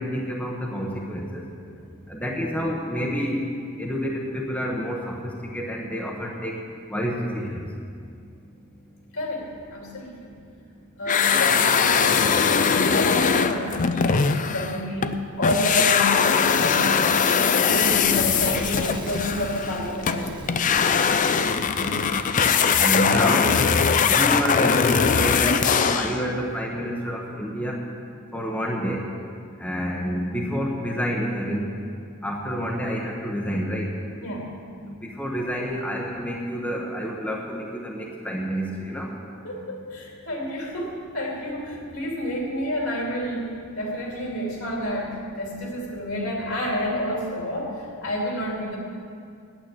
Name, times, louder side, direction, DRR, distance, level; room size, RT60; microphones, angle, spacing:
voice 1, 0.0-1.4 2.1-3.4 3.8-6.6 6.9-7.6 21.8-22.3 22.8-23.6 24.0-27.8 28.3-29.0 29.6-31.7 32.2-33.9 35.0-39.2, equal, 5° left, -2 dB, 0.9 m, -28 dB
voice 2, 9.1-10.4 11.0-20.8 34.2-34.5 39.4-48.8, left 1 dB, 65° left, -2 dB, 2.7 m, -30 dB
sound 1, 11.1-15.2 15.4-26.2, left 6 dB, 35° left, 0.4 m, -21 dB
Fire / Explosion, 17.7-22.5, right 1 dB, 20° right, 1.1 m, -38 dB
9.0 x 8.9 x 8.1 m, 2.3 s
head